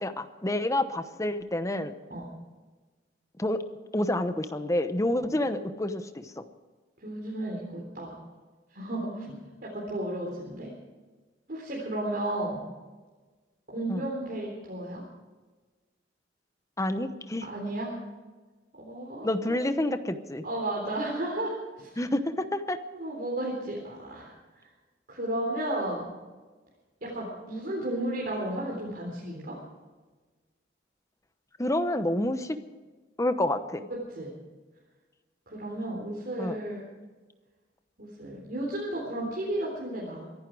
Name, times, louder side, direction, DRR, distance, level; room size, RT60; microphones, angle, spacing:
voice 1, 0.0-1.9 3.4-3.6 3.9-6.4 13.9-14.0 16.8-17.5 19.2-20.4 22.0-22.8 31.6-32.6 33.2-33.9 36.4-36.6, left 1 dB, 15° left, 10 dB, 0.9 m, -28 dB
voice 2, 7.0-8.2 8.7-10.7 11.5-12.6 13.7-15.0 17.4-17.9 18.8-19.6 20.4-21.9 22.9-24.3 25.1-26.1 27.0-29.6 33.9-34.3 35.5-36.8 38.0-40.2, right 1 dB, 50° right, -4 dB, 3.8 m, -33 dB
23.5 x 11.0 x 4.8 m, 1.3 s
head